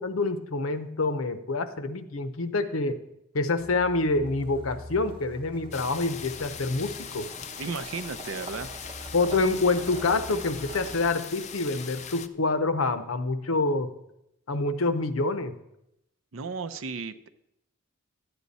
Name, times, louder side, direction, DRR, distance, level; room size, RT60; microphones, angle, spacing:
voice 1, 0.0-3.0 3.3-7.3 9.1-13.9 14.5-15.6, left 3 dB, 80° left, 11 dB, 0.7 m, -27 dB
sound 1, 3.6-11.1, equal, 25° right, 0.8 m, -44 dB
sound 2, 5.7-12.3, left 7 dB, 35° left, 0.4 m, -40 dB
voice 2, 7.6-8.7 16.3-17.3, right 4 dB, 75° right, 11 dB, 0.6 m, -34 dB
12.5 x 8.9 x 4.1 m, 0.83 s
head